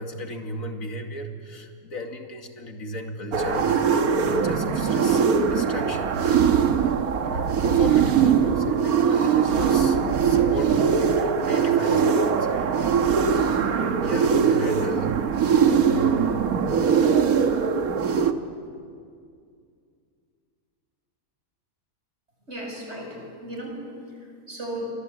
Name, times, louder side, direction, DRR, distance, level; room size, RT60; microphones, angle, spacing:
voice 1, 0.0-13.1 13.4-13.7 14.0-15.6 15.9-16.4 17.1-17.2, equal, 65° left, 4 dB, 2.6 m, -36 dB
sound 1, 3.3-18.3, right 6 dB, 85° right, 1.7 m, -21 dB
voice 2, 22.5-24.9, right 1 dB, 50° right, 1 dB, 6.9 m, -36 dB
28.5 x 23.5 x 8.3 m, 2.3 s
omnidirectional pair, 1.5 m